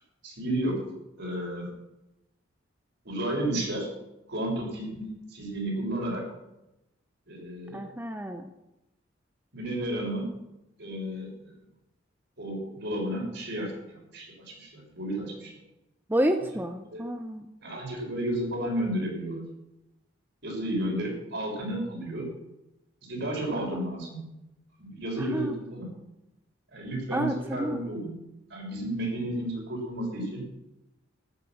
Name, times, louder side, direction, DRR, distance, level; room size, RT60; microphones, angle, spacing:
voice 1, 0.2-0.8 1.2-1.7 3.0-3.9 4.3-6.2 7.3-7.8 9.5-10.2 10.8-11.5 12.4-15.5 16.9-17.0 17.6-19.4 20.4-22.3 23.0-24.2 24.8-25.9 26.7-28.1 28.5-30.4, right 1 dB, 65° right, -1 dB, 6.6 m, -32 dB
voice 2, 7.7-8.5 16.1-17.5 23.5-24.1 25.2-25.5 27.1-27.8, right 1 dB, 10° right, 6 dB, 0.8 m, -30 dB
14.0 x 12.0 x 6.2 m, 0.91 s
head